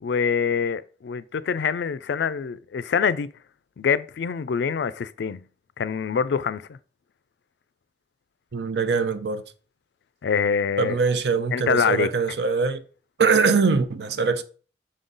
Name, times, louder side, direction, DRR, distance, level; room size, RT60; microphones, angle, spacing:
voice 1, 0.0-3.3 3.8-5.4 5.8-6.8 10.2-11.0 11.5-12.1, left 6 dB, 80° left, 0.4 m, -25 dB
voice 2, 8.5-9.4 10.8-12.8 13.2-14.4, right 5 dB, 75° right, 0.6 m, -22 dB
6.4 x 3.8 x 3.9 m
head